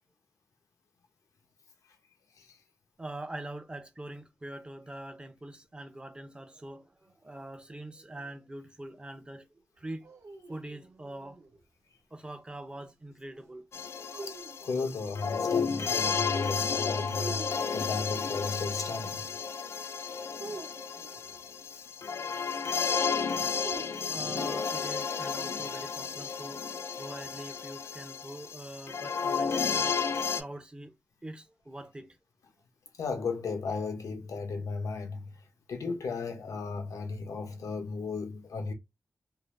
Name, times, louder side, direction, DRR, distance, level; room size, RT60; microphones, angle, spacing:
voice 1, 3.0-10.1 10.5-11.4 12.1-13.7 24.1-26.7 27.0-30.0 30.4-30.9 31.2-32.2, right 1 dB, 20° right, 0.5 m, -43 dB
sound 1, 9.8-11.6 14.1-15.3 17.2-18.0 20.4-21.5 23.5-24.7, right 3 dB, 60° right, 0.8 m, -46 dB
sound 2, 13.7-30.4, left 5 dB, 50° left, 0.3 m, -32 dB
voice 2, 14.2-19.3 33.0-35.4 35.7-38.7, left 4 dB, 90° left, 0.7 m, -35 dB
2.6 x 2.0 x 3.1 m
wide cardioid pair, 125°, 5 cm